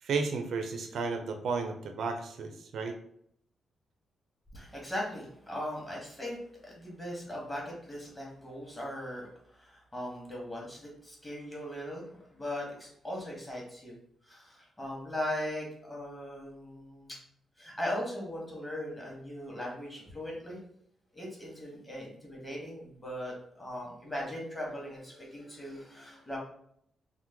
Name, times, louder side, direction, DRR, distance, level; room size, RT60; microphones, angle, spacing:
voice 1, 0.0-3.0, right 4 dB, 65° right, 5 dB, 0.4 m, -33 dB
voice 2, 4.5-9.3 9.5-14.0 14.2-17.2 17.6-20.6 21.1-26.4, left 1 dB, 15° left, -3 dB, 0.9 m, -39 dB
3.0 x 2.0 x 3.3 m, 0.69 s
wide cardioid pair, 155°, 0 cm